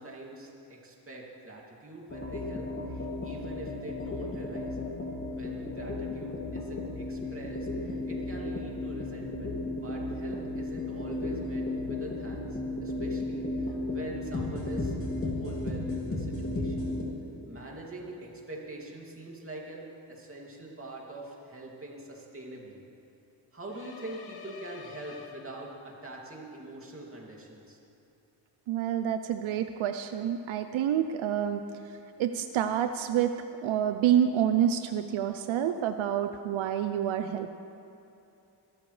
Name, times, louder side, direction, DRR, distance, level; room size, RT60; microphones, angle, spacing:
voice 1, 0.0-4.9 5.3-16.9 17.5-22.8 23.5-27.8, right 2 dB, 30° right, -2 dB, 2.6 m, -44 dB
sound 1, 2.1-17.0, left 2 dB, 30° left, 2.5 m, -34 dB
sound 2, 23.7-26.0, left 7 dB, 55° left, 1.0 m, -47 dB
voice 2, 28.7-31.6 32.2-33.3 33.6-37.6, right 10 dB, 85° right, 8 dB, 0.6 m, -28 dB
21.5 x 12.5 x 3.3 m, 2.8 s
cardioid pair, 90°, 46 cm